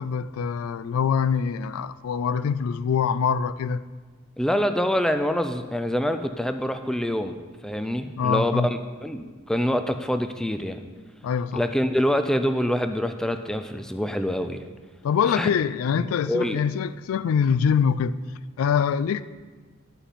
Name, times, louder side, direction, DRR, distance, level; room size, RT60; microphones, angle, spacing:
voice 1, 0.0-3.8 8.2-8.7 11.2-11.6 15.0-18.2 18.6-19.2, left 7 dB, 90° left, 0.3 m, -24 dB
voice 2, 4.4-7.3 7.6-10.8 11.5-14.6 15.3-15.5 16.3-16.6, equal, 5° left, 0.3 m, -25 dB
11.5 x 5.7 x 4.2 m
head